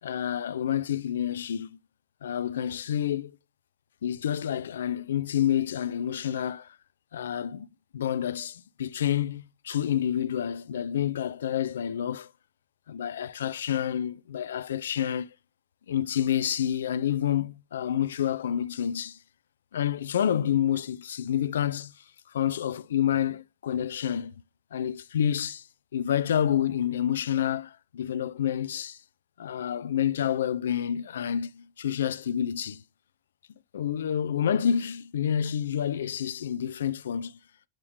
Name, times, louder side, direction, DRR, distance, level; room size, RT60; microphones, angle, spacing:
voice 1, 0.0-1.8 2.2-3.3 4.0-6.7 7.1-7.7 7.9-12.3 12.9-15.3 15.9-19.2 19.7-21.9 22.3-24.3 24.7-25.7 25.9-29.0 29.4-32.8 33.7-37.4, left 9 dB, 65° left, 0.5 m, -28 dB
8.8 x 6.9 x 3.3 m
figure-of-eight pair, 90°, 0 cm